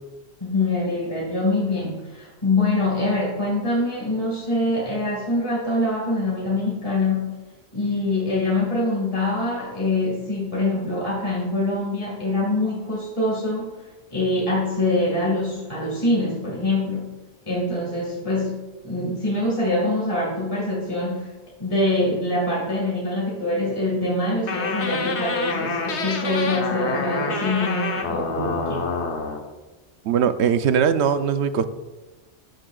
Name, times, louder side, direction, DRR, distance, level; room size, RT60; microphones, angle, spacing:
voice 1, 0.4-7.3 7.7-13.7 14.1-17.1 17.5-18.6 18.8-21.3 21.6-28.9, left 2 dB, 25° left, 2.0 m, -24 dB
sound 1, 24.5-29.4, left 4 dB, 85° left, 1.3 m, -27 dB
voice 2, 30.0-31.6, right 7 dB, 80° right, 0.9 m, -20 dB
13.0 x 9.7 x 2.4 m
omnidirectional pair, 1.1 m